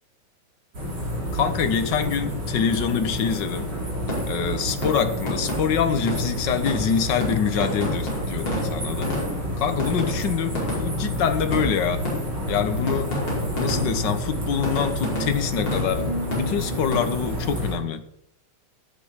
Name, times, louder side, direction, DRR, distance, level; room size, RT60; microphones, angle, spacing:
sound 1, 0.7-17.7, equal, 35° right, 5.0 m, -29 dB
voice 1, 1.3-3.7 4.3-9.2 9.6-12.1 12.5-13.1 13.5-16.0 16.4-18.0, left 7 dB, 65° left, 9 dB, 1.1 m, -25 dB
sound 2, 4.1-4.6 4.8-11.1 11.5-12.6 12.9-14.2 14.6-17.0, left 1 dB, 35° left, 5.8 m, -31 dB
16.5 x 10.5 x 5.1 m, 0.72 s
omnidirectional pair, 3.3 m